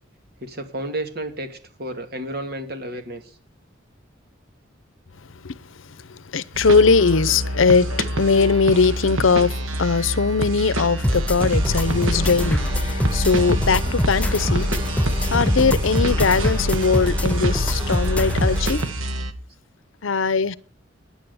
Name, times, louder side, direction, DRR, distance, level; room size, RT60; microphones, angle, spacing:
voice 1, 0.4-3.4, right 1 dB, 50° right, 2.2 m, -32 dB
voice 2, 6.3-18.9 20.0-20.6, left 4 dB, 80° left, 0.7 m, -20 dB
sound 1, 6.5-19.3, right 1 dB, 85° right, 1.3 m, -27 dB
sound 2, 11.0-18.8, left 1 dB, 5° left, 0.5 m, -24 dB
sound 3, 11.6-18.7, left 1 dB, 25° right, 4.1 m, -31 dB
10.0 x 9.3 x 9.6 m
head